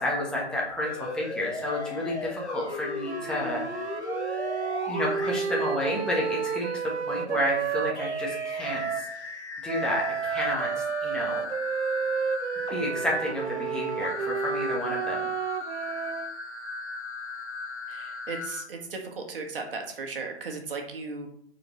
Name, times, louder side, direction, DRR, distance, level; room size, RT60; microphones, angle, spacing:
voice 1, 0.0-3.9 4.9-9.1 9.6-11.5 12.7-15.3, left 1 dB, ahead, -3 dB, 1.0 m, -31 dB
sound 1, 0.8-6.8 7.9-18.6, left 4 dB, 80° left, 1.1 m, -37 dB
sound 2, 3.0-9.1 9.7-16.3, right 6 dB, 80° right, 0.6 m, -31 dB
voice 2, 17.9-21.3, right 4 dB, 55° right, 3 dB, 1.5 m, -36 dB
7.5 x 4.4 x 3.1 m, 0.68 s
figure-of-eight pair, 135°, 33 cm